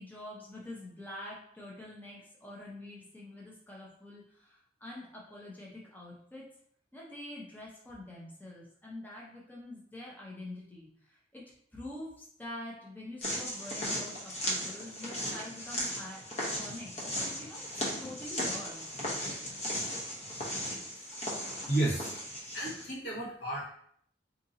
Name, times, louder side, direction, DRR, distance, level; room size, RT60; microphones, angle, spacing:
voice 1, 0.0-6.5 6.9-11.4 11.7-18.9, left 1 dB, 10° left, -4 dB, 0.6 m, -46 dB
sound 1, 13.2-22.9, equal, 40° left, 0.9 m, -37 dB
voice 2, 21.7-22.1 22.5-23.7, right 1 dB, 65° left, -5 dB, 1.3 m, -32 dB
2.8 x 2.6 x 3.9 m, 0.64 s
head